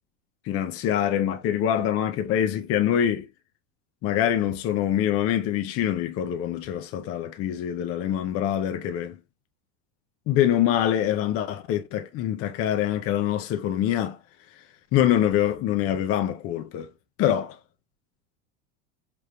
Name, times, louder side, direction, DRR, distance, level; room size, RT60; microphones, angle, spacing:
voice 1, 0.5-3.3 4.0-9.2 10.3-14.2 14.9-16.9 17.2-17.6, left 10 dB, 40° left, 0.6 m, -24 dB
5.1 x 3.0 x 2.2 m
supercardioid pair, 115°, 38 cm